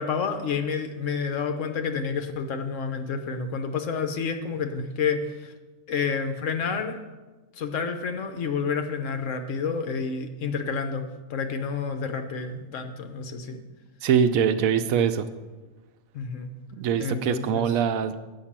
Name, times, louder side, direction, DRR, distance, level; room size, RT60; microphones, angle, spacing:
voice 1, 0.0-5.5 5.9-7.0 7.6-13.6 16.1-16.5 17.0-17.7, left 5 dB, 65° left, 7 dB, 1.1 m, -29 dB
voice 2, 14.0-15.3 16.8-18.2, right 8 dB, 80° right, 10 dB, 1.0 m, -23 dB
8.7 x 5.5 x 7.3 m, 1.2 s
omnidirectional pair, 1.4 m